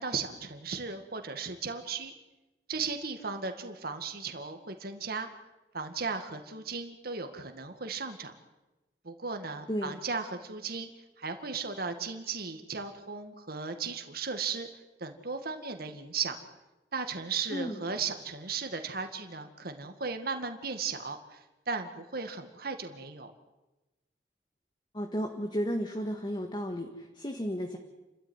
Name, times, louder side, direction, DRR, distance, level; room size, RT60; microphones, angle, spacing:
voice 1, 0.0-2.1 2.7-5.3 5.7-8.3 9.0-10.9 11.2-14.7 15.0-16.4 16.9-23.3, right 5 dB, 60° right, 6 dB, 2.1 m, -36 dB
voice 2, 17.5-17.8 24.9-27.8, equal, 25° left, 3 dB, 1.9 m, -33 dB
29.5 x 13.5 x 9.7 m, 1.1 s
head